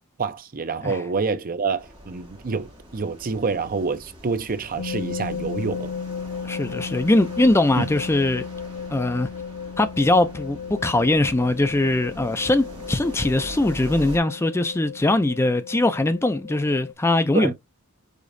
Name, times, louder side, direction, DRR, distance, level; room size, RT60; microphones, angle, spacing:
voice 1, 0.2-5.9 7.8-7.9 17.3-17.5, right 4 dB, 40° right, 0.6 m, -27 dB
sound 1, 1.8-14.2, right 1 dB, 25° right, 2.6 m, -43 dB
sound 2, 4.8-16.9, left 6 dB, 55° left, 0.6 m, -35 dB
voice 2, 6.4-8.4 8.9-9.3 9.8-17.5, left 2 dB, 10° left, 0.4 m, -21 dB
5.0 x 3.7 x 2.6 m
head